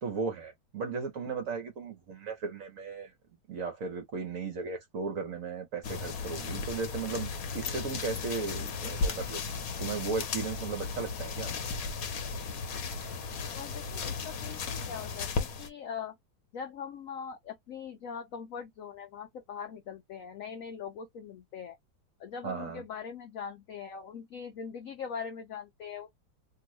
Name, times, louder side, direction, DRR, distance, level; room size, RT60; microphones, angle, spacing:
voice 1, 0.0-3.1 3.5-11.5 22.4-22.8, right 5 dB, 60° right, 0.9 m, -36 dB
sound 1, 5.8-15.7, left 5 dB, 60° left, 1.0 m, -35 dB
voice 2, 13.5-16.2 16.5-21.8 22.2-26.1, left 7 dB, 90° left, 0.7 m, -41 dB
2.9 x 2.6 x 3.0 m
omnidirectional pair, 2.1 m